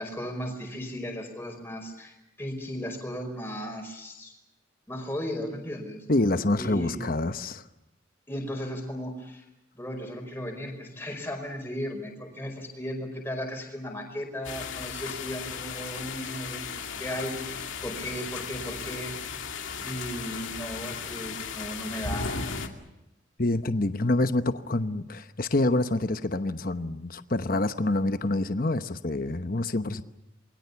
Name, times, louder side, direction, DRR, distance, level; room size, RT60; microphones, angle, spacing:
voice 1, 0.0-4.3 4.9-6.1 6.6-7.0 8.3-9.4 9.8-19.1 19.7-22.4, equal, 10° left, 5.2 m, -36 dB
voice 2, 6.1-7.6 23.4-30.0, left 2 dB, 45° left, 1.0 m, -27 dB
sound 1, 14.4-22.7, left 5 dB, 90° left, 2.4 m, -36 dB
28.0 x 22.0 x 7.0 m
head